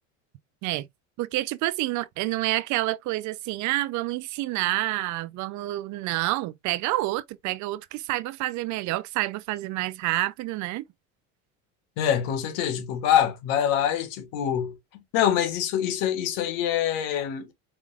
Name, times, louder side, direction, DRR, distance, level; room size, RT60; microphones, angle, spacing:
voice 1, 1.2-10.8, right 17 dB, 55° right, 0.5 m, -28 dB
voice 2, 12.0-14.8 15.1-17.5, left 10 dB, 75° left, 1.5 m, -25 dB
4.8 x 3.7 x 2.3 m
cardioid pair, 130°, 36 cm